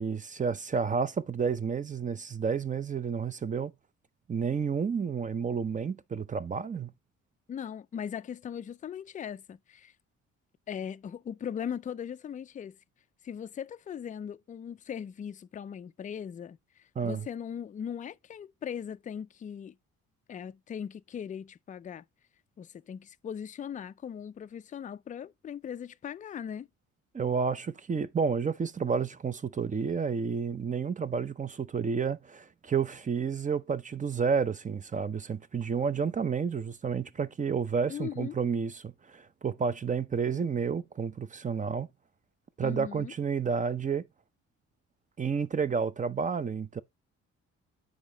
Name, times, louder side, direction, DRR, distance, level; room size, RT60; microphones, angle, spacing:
voice 1, 0.0-3.7 4.3-6.9 17.0-17.3 27.1-41.9 42.6-44.0 45.2-46.8, right 6 dB, 25° right, 0.6 m, -30 dB
voice 2, 7.5-9.9 10.7-12.8 13.2-19.8 20.3-22.0 22.6-26.7 37.9-38.4 42.6-43.1, left 8 dB, 25° left, 0.3 m, -39 dB
7.1 x 5.0 x 3.8 m
cardioid pair, 90°, 30 cm